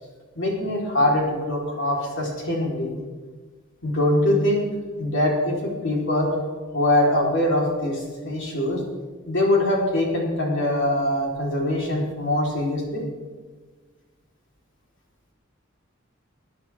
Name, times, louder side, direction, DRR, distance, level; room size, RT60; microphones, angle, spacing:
voice 1, 0.4-2.9 3.8-4.7 5.0-6.3 6.7-8.8 9.3-13.0, left 1 dB, 65° left, -3 dB, 4.3 m, -23 dB
21.0 x 10.0 x 3.7 m, 1.4 s
head